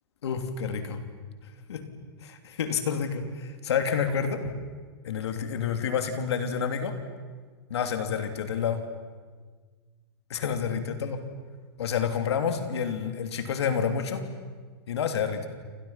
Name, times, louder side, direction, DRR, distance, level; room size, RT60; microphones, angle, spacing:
voice 1, 0.2-1.0 1.7-1.9 2.2-4.6 5.0-7.0 7.7-8.9 10.3-11.2 11.8-14.3 14.9-15.5, left 7 dB, 75° left, 7 dB, 3.2 m, -29 dB
29.0 x 26.5 x 5.9 m, 1.5 s
hypercardioid pair, 135°, 14 cm